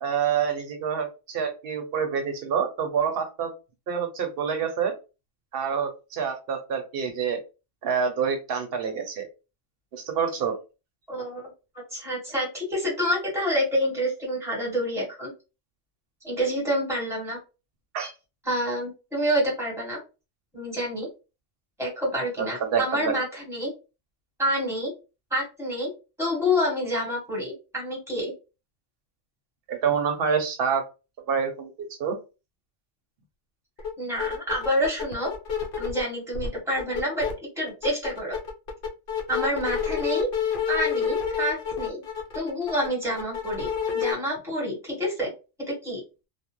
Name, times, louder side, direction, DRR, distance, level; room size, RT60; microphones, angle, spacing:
voice 1, 0.0-3.5 3.9-4.9 5.5-7.4 7.8-9.3 9.9-10.5 17.9-18.1 22.4-23.1 29.7-30.8 31.3-32.2, right 7 dB, 60° right, 5 dB, 0.9 m, -27 dB
voice 2, 11.1-15.3 16.2-17.4 18.4-20.0 20.5-21.1 21.8-23.7 24.4-24.9 25.3-25.9 26.2-28.3 34.0-35.3 35.8-37.3 37.6-38.4 39.3-40.3 40.7-42.0 42.3-43.7 43.9-45.3 45.7-46.0, equal, ahead, -3 dB, 1.3 m, -28 dB
sound 1, 33.8-33.9 34.1-36.0 36.3-37.3 37.7-44.1, left 7 dB, 55° left, 0.8 m, -29 dB
2.4 x 2.3 x 2.9 m, 0.30 s
omnidirectional pair, 1.2 m